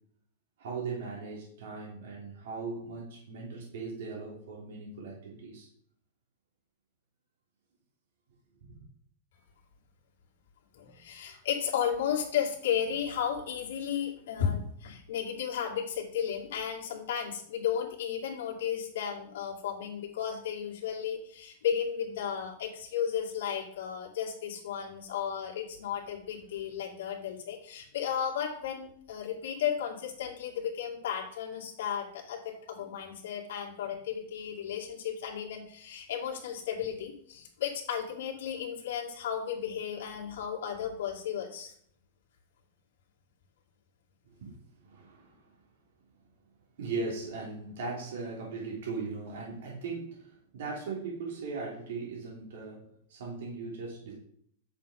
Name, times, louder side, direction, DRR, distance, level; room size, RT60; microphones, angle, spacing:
voice 1, 0.6-5.7 8.6-8.8 44.4-44.5 44.8-45.5 46.8-52.8 53.1-54.1, right 4 dB, 65° right, -3 dB, 3.0 m, -38 dB
voice 2, 10.7-41.7, left 8 dB, 70° left, -1 dB, 2.4 m, -34 dB
8.4 x 6.8 x 3.7 m, 0.64 s
supercardioid pair, 165°, 0 cm